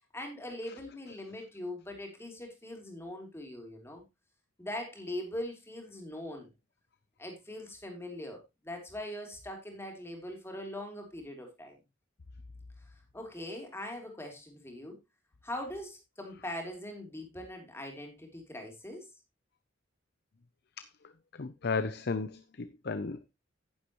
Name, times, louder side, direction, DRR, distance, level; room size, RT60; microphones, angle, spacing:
voice 1, 0.1-4.0 4.6-6.5 7.2-11.8 12.9-15.0 15.4-19.1, left 1 dB, 15° left, 3.1 m, -41 dB
voice 2, 21.4-23.3, left 4 dB, 55° left, 0.6 m, -34 dB
10.5 x 10.0 x 3.1 m
head